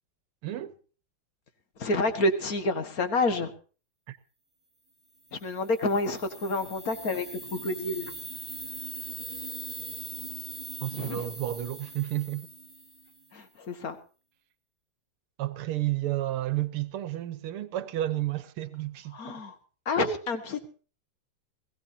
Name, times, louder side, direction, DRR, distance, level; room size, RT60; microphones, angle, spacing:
voice 1, 0.4-0.7 4.1-4.2 10.8-12.5 15.4-19.2, right 14 dB, 90° right, 1.9 m, -31 dB
voice 2, 1.8-3.5 5.4-7.3 7.5-8.1 10.9-11.2 13.3-14.0 19.1-19.5 19.9-20.7, left 2 dB, 45° left, 2.0 m, -28 dB
sound 1, 5.4-13.3, right 2 dB, 10° right, 1.4 m, -41 dB
21.0 x 16.5 x 2.8 m
omnidirectional pair, 2.3 m